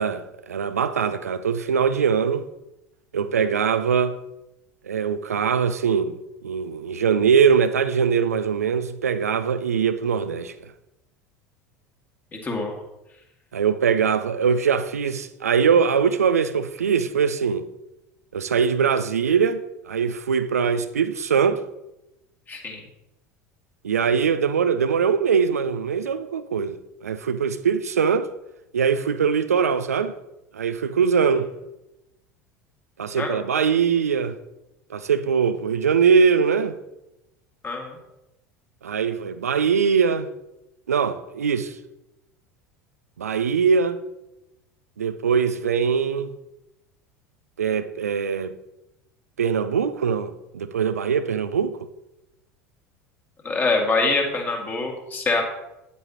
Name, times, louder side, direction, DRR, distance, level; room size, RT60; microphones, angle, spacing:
voice 1, 0.0-2.5 3.1-4.2 4.8-6.2 6.4-10.5 13.5-17.7 18.3-21.6 23.8-26.8 27.0-28.3 28.7-30.2 30.5-31.5 33.0-34.4 34.9-36.8 38.8-40.3 40.9-41.8 43.2-44.0 45.0-46.3 47.6-48.5 49.4-51.8, right 6 dB, 75° right, 0.5 m, -22 dB
voice 2, 12.4-12.7 22.5-22.8 33.2-33.4 37.6-38.0 53.4-55.4, left 3 dB, 20° left, 1.9 m, -24 dB
9.4 x 8.3 x 2.9 m
figure-of-eight pair, 70°, 8 cm